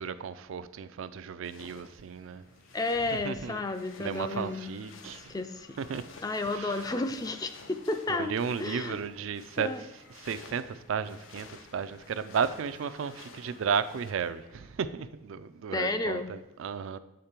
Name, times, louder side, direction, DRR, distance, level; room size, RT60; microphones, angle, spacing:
voice 1, 0.0-2.4 3.2-3.6 4.0-5.3 5.8-6.0 6.5-6.8 8.1-9.7 10.2-17.0, right 6 dB, 80° right, 0.4 m, -34 dB
sound 1, 1.4-14.1, left 4 dB, 80° left, 0.6 m, -53 dB
sound 2, 1.8-14.7, left 2 dB, 45° left, 0.8 m, -59 dB
voice 2, 2.7-5.8 6.2-9.0 9.6-9.8 15.7-16.3, left 2 dB, 20° left, 0.3 m, -32 dB
sound 3, 4.1-4.8 6.1-6.6 7.2-7.8 8.5-9.3 9.9-10.7 11.2-11.8 12.7-13.4 13.7-14.4, left 2 dB, 60° left, 1.5 m, -60 dB
7.3 x 5.1 x 4.3 m
head